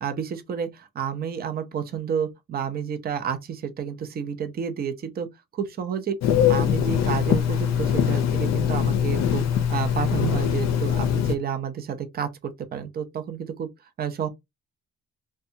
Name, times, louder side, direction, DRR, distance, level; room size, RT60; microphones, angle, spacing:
voice 1, 0.0-5.3 5.5-6.1 6.5-13.7 14.0-14.3, right 7 dB, 30° right, 0.4 m, -30 dB
Telephone, 6.2-11.3, left 9 dB, 60° left, 0.5 m, -22 dB
2.6 x 2.2 x 2.6 m
cardioid pair, 155°, 30 cm